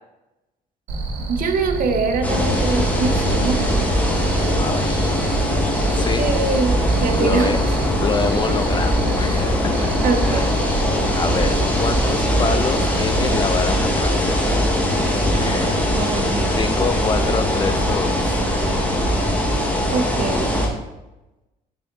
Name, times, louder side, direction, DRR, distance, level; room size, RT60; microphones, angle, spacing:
Cricket, 0.9-13.4, right 3 dB, 90° right, 1.2 m, -29 dB
voice 1, 1.3-3.8 6.2-7.6 8.5-8.6 10.0-10.5 15.9-16.5 19.9-20.5, right 4 dB, 55° right, 6 dB, 0.9 m, -23 dB
sound 1, 2.2-20.7, equal, 10° left, 1.3 m, -21 dB
voice 2, 4.6-5.2 5.9-6.3 7.2-7.6 8.0-10.5 11.2-14.7 15.3-15.9 16.5-18.4, left 5 dB, 25° left, 10 dB, 0.3 m, -27 dB
7.5 x 4.0 x 3.7 m, 1.0 s
cardioid pair, 110°, 17 cm